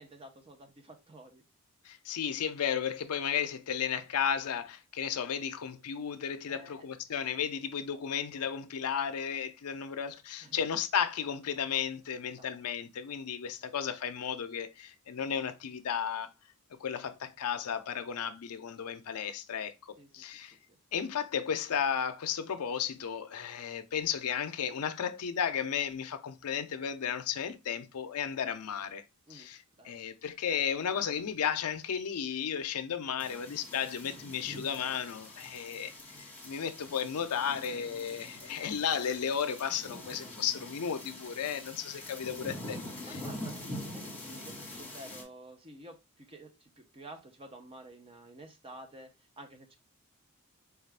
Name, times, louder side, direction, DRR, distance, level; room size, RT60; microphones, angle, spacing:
voice 1, 0.0-1.4 6.5-6.9 10.4-10.6 12.4-12.5 13.6-13.7 20.0-20.3 20.7-20.8 29.3-30.0 38.4-38.6 42.1-42.3 43.0-49.8, right 1 dB, 25° right, 0.6 m, -51 dB
voice 2, 1.8-16.3 16.8-20.6 20.9-29.0 29.3-29.6 29.8-43.1, left 8 dB, 75° left, 0.5 m, -34 dB
sound 1, 33.2-45.2, left 1 dB, 5° left, 1.2 m, -44 dB
4.5 x 2.4 x 3.2 m
head